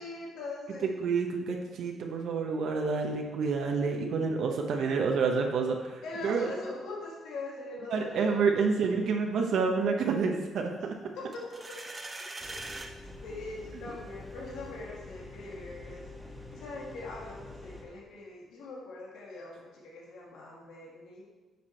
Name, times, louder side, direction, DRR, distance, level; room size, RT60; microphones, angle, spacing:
voice 1, 0.0-1.0 6.0-8.9 11.2-11.4 13.2-21.2, left 2 dB, 80° left, -4 dB, 1.8 m, -42 dB
voice 2, 1.0-6.5 7.9-10.7, right 5 dB, 70° right, 2 dB, 0.9 m, -28 dB
sound 1, 11.3-12.9, right 2 dB, 25° right, 1.0 m, -41 dB
sound 2, 12.4-17.8, left 2 dB, ahead, 1.5 m, -46 dB
9.4 x 5.9 x 4.4 m, 1.3 s
cardioid pair, 90°, 0 cm